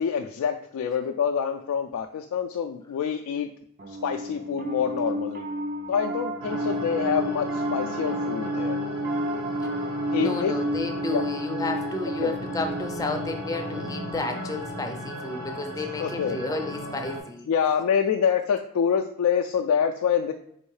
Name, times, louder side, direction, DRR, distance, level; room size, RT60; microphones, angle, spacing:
voice 1, 0.0-3.5 3.9-5.5 5.9-8.8 10.1-10.5 11.1-11.3 12.2-12.4 16.0-16.4 17.5-20.3, left 7 dB, 85° left, 2 dB, 0.3 m, -26 dB
Piano, 3.8-15.3, equal, 40° right, 0.5 m, -31 dB
sound 1, 6.4-17.2, right 1 dB, 85° right, 1.2 m, -36 dB
voice 2, 10.2-17.5, left 2 dB, 15° left, 4 dB, 0.4 m, -32 dB
4.4 x 3.1 x 3.1 m, 0.69 s
head